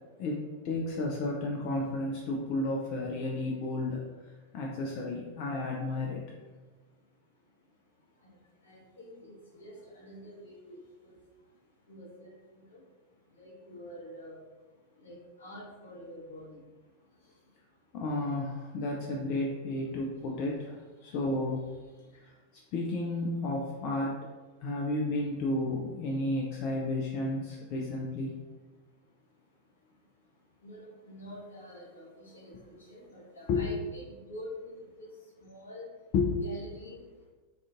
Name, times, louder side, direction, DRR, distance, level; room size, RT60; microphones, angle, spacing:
voice 1, 0.0-4.1 4.5-6.2 17.9-21.6 22.2-22.3 22.7-24.2 24.6-28.3 33.5-33.7 36.1-36.4, left 2 dB, 45° left, -2 dB, 0.3 m, -32 dB
voice 2, 8.6-11.2 11.9-12.8 13.4-14.4 15.0-16.6 20.0-20.1 30.6-35.1 35.4-35.9 36.4-37.0, equal, 70° left, -4 dB, 0.8 m, -47 dB
2.4 x 2.4 x 2.4 m, 1.2 s
figure-of-eight pair, 90°, 0 cm